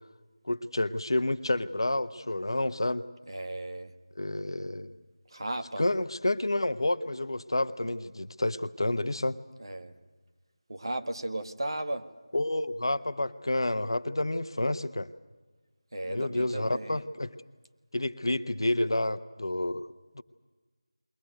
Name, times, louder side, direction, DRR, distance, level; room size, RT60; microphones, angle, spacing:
voice 1, 0.4-3.0 4.2-4.9 5.8-9.4 12.3-15.1 16.1-17.3 17.9-20.2, left 1 dB, 60° left, 13 dB, 1.0 m, -29 dB
voice 2, 3.3-3.9 5.3-5.8 9.6-9.9 10.7-12.0 15.9-17.0, right 1 dB, 55° right, 7 dB, 1.7 m, -35 dB
22.0 x 18.5 x 9.3 m, 1.3 s
figure-of-eight pair, 170°, 3 cm